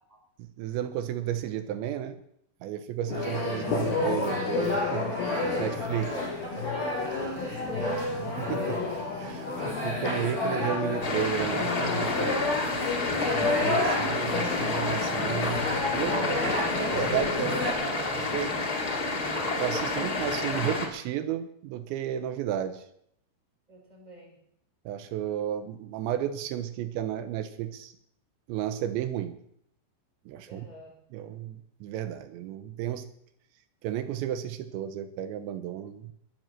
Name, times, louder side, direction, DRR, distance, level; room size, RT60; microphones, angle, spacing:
voice 1, 0.4-2.2 2.6-6.1 8.4-8.9 9.2-15.7 15.9-18.6 19.6-22.8 24.9-27.9 28.5-29.4 30.3-30.7 31.1-33.1 33.8-36.1, right 11 dB, 90° right, 10 dB, 3.3 m, -33 dB
sound 1, 3.1-17.7, left 3 dB, 60° left, 7.6 m, -30 dB
voice 2, 6.0-8.1 23.7-24.4 30.5-31.0, right 1 dB, 10° right, -1 dB, 5.8 m, -41 dB
sound 2, 11.0-20.9, left 3 dB, 35° left, 1.7 m, -30 dB
21.0 x 7.9 x 7.6 m, 0.71 s
omnidirectional pair, 5.1 m